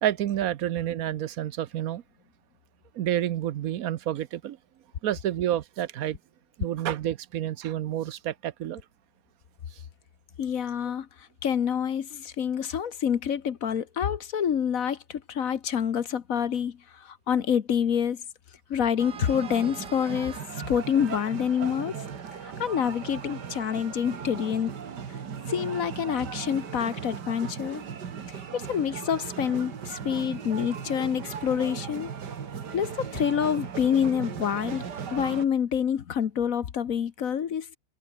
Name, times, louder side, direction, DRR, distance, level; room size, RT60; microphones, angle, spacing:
voice 1, 0.0-2.0 2.9-4.6 5.0-6.2 6.6-8.8 9.7-9.8, right 11 dB, 65° right, 1.1 m, -29 dB
voice 2, 10.4-18.2 18.7-21.9 22.4-24.7 25.1-25.2 25.5-27.8 28.3-32.1 32.7-34.8 35.1-37.8, left 8 dB, 60° left, 1.4 m, -27 dB
sound 1, 19.0-35.5, right 7 dB, 85° right, 2.4 m, -37 dB
omnidirectional pair, 1.8 m